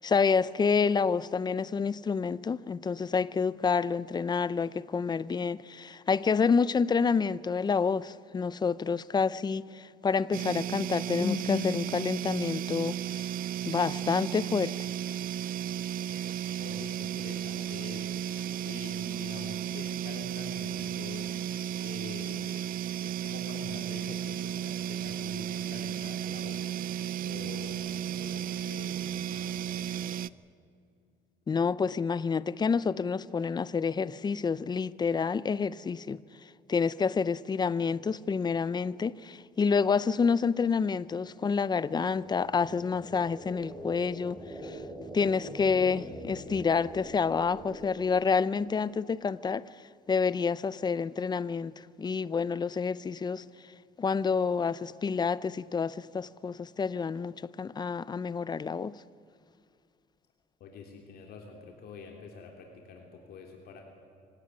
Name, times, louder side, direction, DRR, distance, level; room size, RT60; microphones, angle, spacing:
voice 1, 0.0-13.0 13.7-14.7 31.5-36.2 36.7-44.8 45.1-49.7 50.1-51.7 52.0-53.4 54.0-59.0, left 5 dB, 25° left, 0.6 m, -28 dB
sound 1, 10.3-30.3, right 10 dB, 60° right, 0.5 m, -34 dB
voice 2, 16.6-21.3 21.8-22.6 23.0-26.7 27.2-30.3 60.6-63.8, left 4 dB, 65° left, 3.3 m, -46 dB
sound 2, 40.1-48.8, equal, ahead, 5.3 m, -45 dB
25.0 x 17.5 x 9.7 m
cardioid pair, 110°, 17 cm